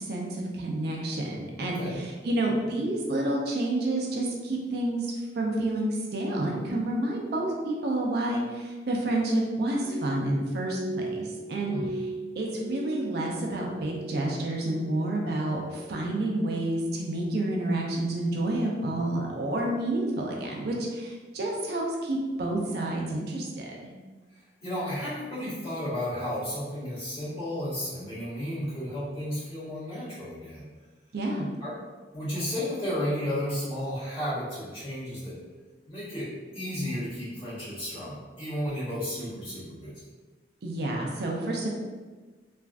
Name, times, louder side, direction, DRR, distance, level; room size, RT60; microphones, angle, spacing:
voice 1, 0.0-11.7 12.4-23.9 31.1-31.5 40.6-41.7, right 1 dB, 65° right, -1 dB, 0.5 m, -29 dB
voice 2, 1.6-2.0 11.7-11.9 24.6-30.6 31.6-31.7 32.1-35.3 35.9-39.9, equal, 35° left, -11 dB, 1.5 m, -33 dB
Glass, 9.7-14.3 14.6-15.3 15.7-16.2 16.8-17.1, right 1 dB, 55° left, 0.8 m, -39 dB
3.3 x 2.5 x 2.3 m, 1.3 s
head